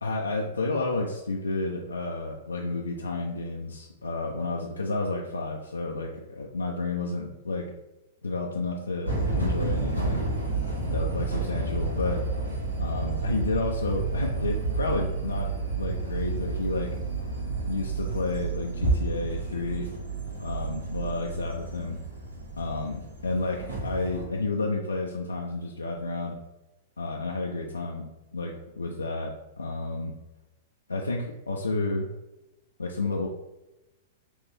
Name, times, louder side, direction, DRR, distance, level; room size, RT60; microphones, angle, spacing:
voice 1, 0.0-7.7 8.2-10.3 10.9-12.2 12.8-15.5 15.8-17.0 17.7-19.9 20.4-22.0 22.6-23.0 23.2-26.4 27.0-30.1 30.9-32.1 32.8-33.3, left 3 dB, 75° left, -1 dB, 0.5 m, -31 dB
sound 1, 9.0-24.2, right 3 dB, 80° right, 1.4 m, -30 dB
6.1 x 2.5 x 3.4 m, 1.0 s
figure-of-eight pair, 100°, 0 cm